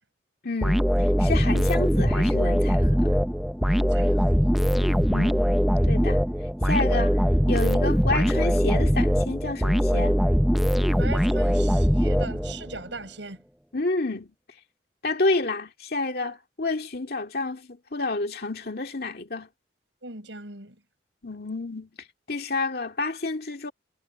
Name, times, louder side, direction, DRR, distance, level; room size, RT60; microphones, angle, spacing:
voice 1, 0.4-0.9 1.2-3.2 5.1-5.4 5.9-6.2 6.6-7.2 7.5-10.2 13.7-14.3 15.0-19.5 21.2-21.9 22.3-23.7, left 3 dB, 55° left, 2.2 m, -29 dB
sound 1, 0.6-12.8, equal, ahead, 0.5 m, -22 dB
voice 2, 3.7-4.7 11.0-13.4 20.0-20.8, right 3 dB, 75° right, 7.2 m, -40 dB
head